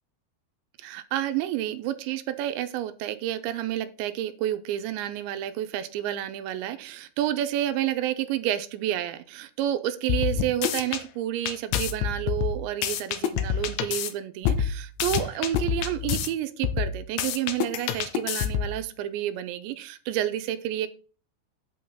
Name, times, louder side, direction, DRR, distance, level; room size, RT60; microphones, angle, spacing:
voice 1, 0.8-20.9, right 12 dB, 90° right, 10 dB, 3.0 m, -30 dB
sound 1, 10.1-11.0 11.5-14.1 14.4-16.3 16.6-18.8, left 9 dB, 90° left, 3.3 m, -27 dB
8.6 x 7.7 x 3.8 m, 0.38 s
omnidirectional pair, 5.2 m